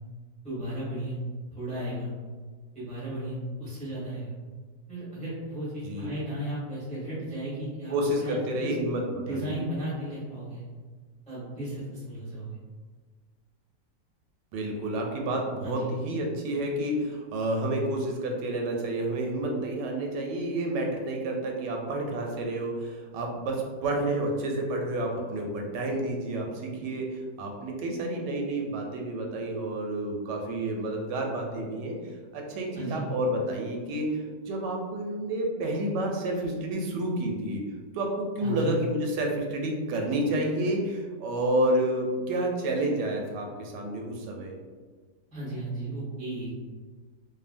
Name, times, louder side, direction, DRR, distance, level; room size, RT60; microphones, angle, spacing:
voice 1, 0.4-1.2 1.5-2.1 2.7-4.3 4.9-8.7 9.1-10.6 11.3-12.6 15.6-15.9 32.7-33.0 38.4-38.7 45.3-46.5, right 1 dB, 5° left, -9 dB, 0.6 m, -35 dB
voice 2, 7.9-9.6 14.5-32.0 32.3-37.6 37.9-44.6, right 1 dB, 85° right, 1 dB, 1.2 m, -30 dB
2.7 x 2.5 x 2.4 m, 1.4 s
omnidirectional pair, 1.8 m